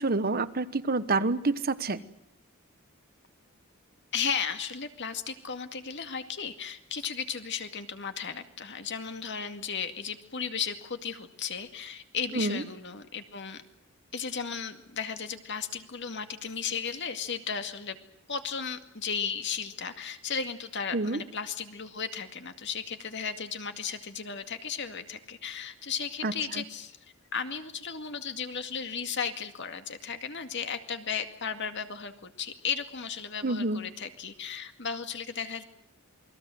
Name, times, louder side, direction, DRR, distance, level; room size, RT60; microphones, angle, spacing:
voice 1, 0.0-2.0 12.3-12.6 20.9-21.2 26.2-26.3 33.4-33.8, right 3 dB, 45° right, 13 dB, 1.2 m, -27 dB
voice 2, 4.1-13.6 14.1-18.0 18.3-27.0 27.3-35.6, left 6 dB, 55° left, 7 dB, 2.2 m, -35 dB
28.5 x 21.5 x 7.8 m, 0.72 s
head